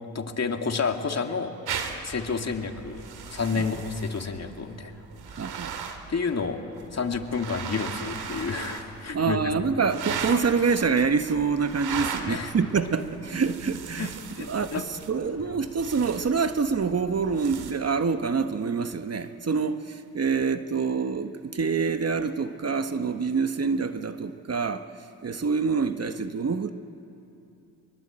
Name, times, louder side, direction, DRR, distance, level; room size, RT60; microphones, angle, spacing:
voice 1, 0.1-1.5 2.0-4.9 5.3-5.5 6.1-6.6 6.9-9.4 12.3-12.5 14.0-14.1 14.4-14.9 15.5-15.6, left 5 dB, 40° left, 4 dB, 2.6 m, -30 dB
sound 1, 1.7-17.7, right 6 dB, 75° right, 2.6 m, -38 dB
voice 2, 5.4-5.8 9.1-14.2 14.5-24.9 25.2-26.7, right 5 dB, 40° right, 9 dB, 1.3 m, -26 dB
23.5 x 23.0 x 8.9 m, 2.8 s
supercardioid pair, 55°, 39 cm